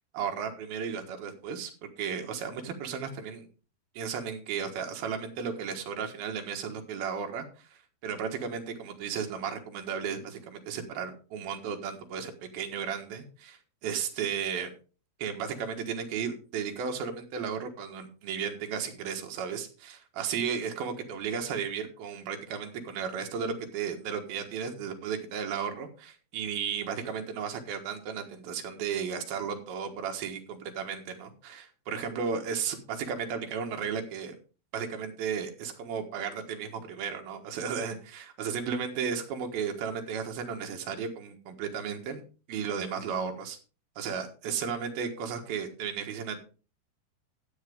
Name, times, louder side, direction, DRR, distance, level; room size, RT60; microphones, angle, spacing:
voice 1, 0.1-3.5 3.9-14.7 15.2-34.4 34.7-42.2 42.5-43.6 44.0-46.4, right 7 dB, 65° right, 4 dB, 3.2 m, -34 dB
14.0 x 8.2 x 3.6 m, 0.35 s
omnidirectional pair, 4.8 m